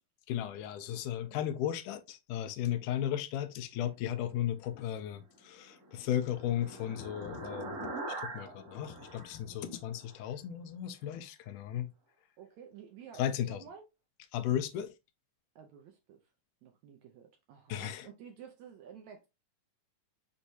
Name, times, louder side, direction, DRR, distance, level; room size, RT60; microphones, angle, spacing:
voice 1, 0.3-7.8 8.2-11.9 13.2-13.6 14.3-14.9 17.7-18.1, left 11 dB, 80° left, 1.9 m, -35 dB
sound 1, 5.5-10.2, right 2 dB, 50° right, 2.4 m, -43 dB
voice 2, 12.4-13.8 15.6-16.2 16.6-19.3, right 7 dB, 75° right, 1.7 m, -52 dB
6.2 x 3.1 x 2.7 m
omnidirectional pair, 4.0 m